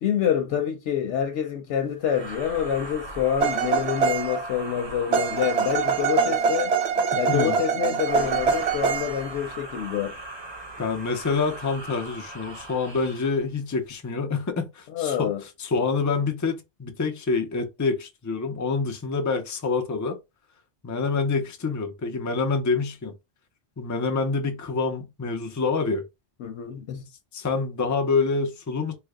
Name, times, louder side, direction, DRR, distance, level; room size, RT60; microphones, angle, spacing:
voice 1, 0.0-6.7 7.1-10.2 14.9-15.4 26.4-27.0, left 9 dB, 90° left, 0.9 m, -27 dB
sound 1, 2.0-6.6 7.9-13.4, right 2 dB, 30° right, 0.7 m, -39 dB
sound 2, 3.4-4.5 5.1-9.3, right 5 dB, 75° right, 0.8 m, -24 dB
voice 2, 10.8-20.2 20.8-23.1 23.8-26.0 27.3-28.9, left 4 dB, 25° left, 0.4 m, -26 dB
3.3 x 2.0 x 3.4 m
omnidirectional pair, 1.2 m